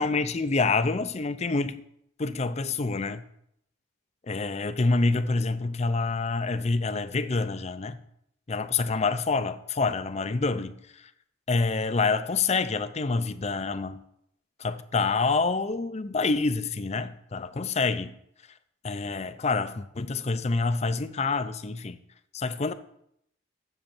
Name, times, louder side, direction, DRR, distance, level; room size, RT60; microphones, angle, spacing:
voice 1, 0.0-1.8 2.2-3.2 4.3-8.0 8.5-11.1 11.5-14.0 14.6-18.2 18.8-22.0 22.3-22.7, left 3 dB, 30° left, 0.5 m, -27 dB
7.8 x 7.1 x 7.1 m
head